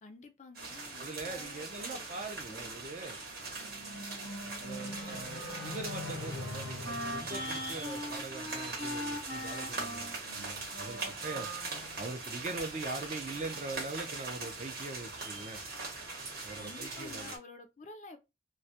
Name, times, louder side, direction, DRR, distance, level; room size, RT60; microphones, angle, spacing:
voice 1, 0.0-2.8 16.6-18.2, left 3 dB, 40° left, 0.3 m, -50 dB
sound 1, 0.5-17.4, right 3 dB, 55° right, 0.8 m, -41 dB
voice 2, 1.0-3.2 4.6-11.5 12.0-15.6 16.4-17.3, right 3 dB, 40° right, 0.4 m, -42 dB
sound 2, 3.2-8.7, left 2 dB, 90° left, 0.6 m, -44 dB
Wind instrument woodwind instrument, 4.9-12.2, equal, 85° right, 1.0 m, -42 dB
2.2 x 2.1 x 2.7 m
head